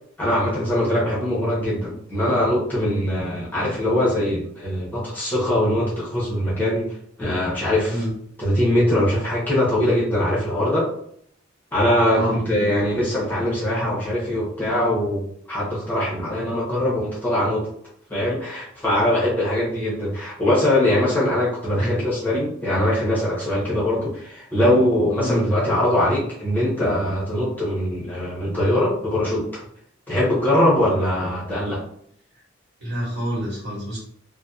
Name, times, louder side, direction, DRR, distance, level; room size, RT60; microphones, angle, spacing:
voice 1, 0.2-8.0 8.4-10.9 11.7-17.7 18.1-29.6 30.1-31.8, left 1 dB, 10° left, -7 dB, 0.7 m, -22 dB
voice 2, 12.0-12.5 21.7-21.9 25.2-25.5 32.8-34.0, equal, 60° right, -5 dB, 1.3 m, -27 dB
2.6 x 2.0 x 2.3 m, 0.65 s
head